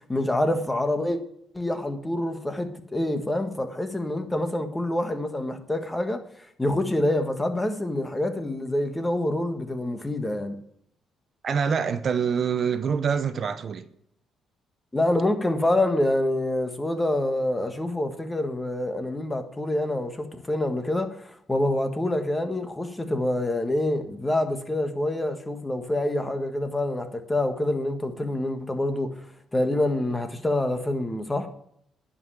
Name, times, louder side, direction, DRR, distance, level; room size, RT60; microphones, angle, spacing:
voice 1, 0.1-1.2 1.5-6.2 6.6-10.6 14.9-29.2 29.5-31.5, left 1 dB, 15° left, 1.5 m, -26 dB
voice 2, 11.4-13.9, right 6 dB, 50° right, 0.8 m, -25 dB
10.5 x 5.6 x 8.4 m
cardioid pair, 90°, 0 cm